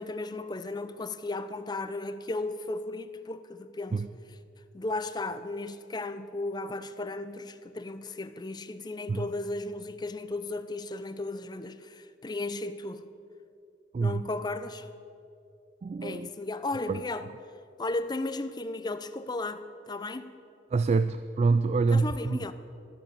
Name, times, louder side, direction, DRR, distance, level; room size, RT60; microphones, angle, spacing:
voice 1, 0.0-4.0 4.7-13.0 14.0-14.9 16.0-17.3 17.8-20.3 21.9-22.5, left 2 dB, 25° left, 11 dB, 0.5 m, -35 dB
voice 2, 13.9-14.2 15.8-16.3 16.9-17.0 20.7-22.4, right 4 dB, 40° right, 13 dB, 0.3 m, -26 dB
13.0 x 10.5 x 6.8 m, 2.5 s
head